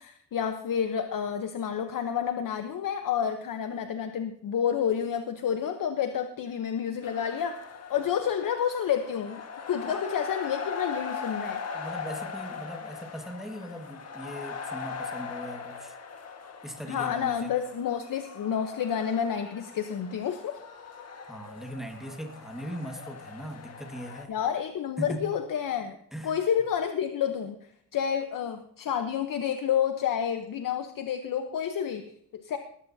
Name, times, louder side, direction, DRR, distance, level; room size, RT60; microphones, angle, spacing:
voice 1, 0.0-9.4 9.7-11.6 16.9-20.6 24.3-26.0 26.2-32.6, left 8 dB, 55° left, 7 dB, 1.0 m, -29 dB
sound 1, 7.0-24.3, left 5 dB, 40° left, 1.6 m, -40 dB
voice 2, 11.7-15.9 16.6-17.5 21.2-24.3 25.0-25.3 26.1-26.3, equal, ahead, 3 dB, 1.7 m, -39 dB
19.0 x 14.0 x 2.8 m, 0.68 s
cardioid pair, 140°, 38 cm